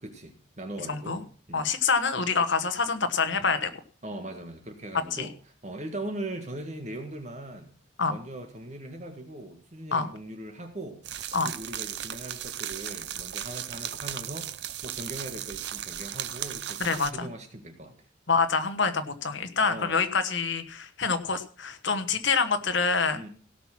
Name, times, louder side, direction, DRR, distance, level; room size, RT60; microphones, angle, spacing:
voice 1, 0.0-1.2 1.5-1.7 4.0-5.3 5.6-7.7 8.1-11.0 11.4-17.9 19.6-20.0 23.2-23.3, right 1 dB, 35° right, 5 dB, 1.7 m, -40 dB
voice 2, 0.9-1.2 1.5-3.7 5.1-5.3 8.0-8.2 9.9-10.1 11.3-11.5 16.8-17.3 18.3-23.2, left 5 dB, 70° left, 9 dB, 1.3 m, -26 dB
sound 1, 11.0-17.1, right 11 dB, 60° right, 0.6 m, -36 dB
17.0 x 6.0 x 6.0 m, 0.42 s
head